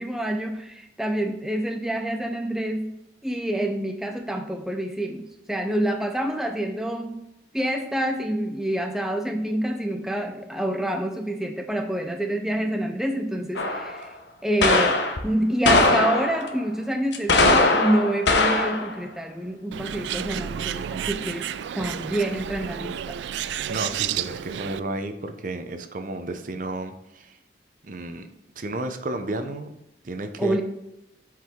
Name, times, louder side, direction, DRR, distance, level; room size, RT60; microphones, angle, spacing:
voice 1, 0.0-2.9 3.2-7.2 7.5-14.1 14.4-21.5 21.7-23.2 30.4-30.6, right 1 dB, 5° right, 4 dB, 0.5 m, -27 dB
sound 1, 13.6-14.0 14.6-15.2 15.7-16.5 17.1-18.9, left 2 dB, 75° left, 0.9 m, -20 dB
Bird, 19.7-24.8, right 10 dB, 75° right, 0.3 m, -31 dB
voice 2, 23.6-27.4 27.8-28.3 28.6-29.8 30.0-30.6, right 2 dB, 45° right, 8 dB, 0.7 m, -32 dB
7.6 x 4.8 x 3.6 m, 0.90 s
head